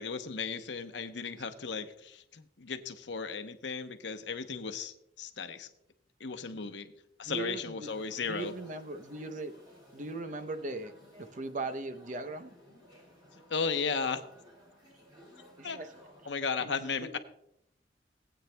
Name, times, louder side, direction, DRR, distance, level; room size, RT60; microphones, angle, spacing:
voice 1, 0.0-5.7 6.2-6.9 7.2-8.5 13.3-14.2 15.6-15.8 16.2-17.2, left 5 dB, 80° left, 8 dB, 0.8 m, -35 dB
voice 2, 7.2-7.9 8.2-9.5 9.9-12.5 15.6-15.9 16.6-16.7 17.0-17.2, right 3 dB, 45° right, 9 dB, 0.7 m, -39 dB
sound 1, 7.8-16.3, equal, 25° right, 2.9 m, -57 dB
18.5 x 8.8 x 2.2 m, 0.75 s
head